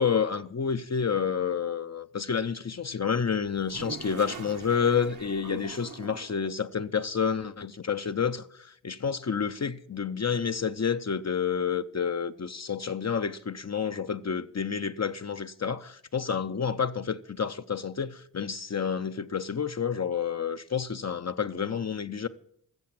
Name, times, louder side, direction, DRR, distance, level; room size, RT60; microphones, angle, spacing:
voice 1, 0.0-22.3, left 6 dB, 50° left, 0.6 m, -29 dB
Toilet flush, 3.4-6.5, right 6 dB, 60° right, 1.0 m, -43 dB
13.5 x 7.5 x 8.7 m
wide cardioid pair, 60°, 35 cm